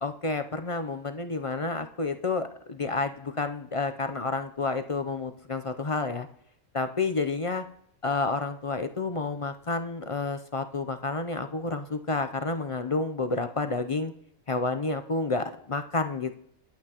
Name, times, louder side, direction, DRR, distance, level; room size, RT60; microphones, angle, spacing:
voice 1, 0.0-6.3 6.7-7.6 8.0-14.1 14.5-16.3, left 3 dB, 35° left, 8 dB, 0.5 m, -30 dB
21.0 x 8.6 x 3.0 m, 0.72 s
omnidirectional pair, 1.2 m